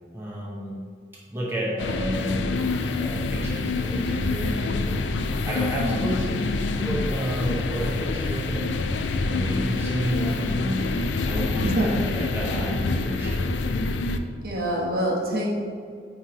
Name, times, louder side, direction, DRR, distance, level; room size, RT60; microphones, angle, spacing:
voice 1, 0.1-0.8 1.3-2.6 3.0-5.0 5.4-8.7 9.2-10.9 11.2-13.5, equal, 15° right, -6 dB, 0.9 m, -31 dB
sound 1, 1.8-14.2, left 3 dB, 85° left, 0.4 m, -26 dB
voice 2, 14.4-15.5, right 1 dB, 55° right, -3 dB, 1.1 m, -25 dB
9.0 x 3.2 x 3.9 m, 2.1 s
head